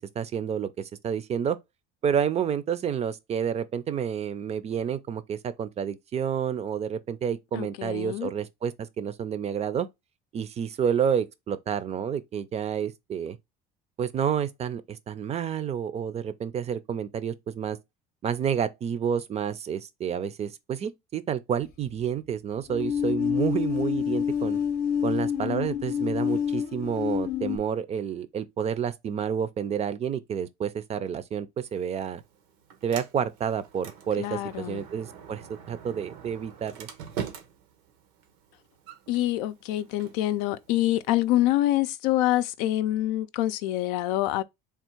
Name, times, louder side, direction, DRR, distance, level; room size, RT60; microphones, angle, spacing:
voice 1, 0.2-1.6 2.0-9.9 10.3-13.4 14.0-17.8 18.2-24.6 25.0-32.2 32.8-36.9, right 8 dB, 35° right, 0.4 m, -29 dB
voice 2, 7.5-8.3 34.2-34.8 39.1-44.4, left 14 dB, 85° left, 0.4 m, -26 dB
sound 1, 22.7-27.6, left 8 dB, 50° left, 0.7 m, -27 dB
Sliding door, 31.6-41.6, right 7 dB, 90° right, 0.9 m, -44 dB
3.5 x 2.4 x 4.4 m
supercardioid pair, 110°, 20 cm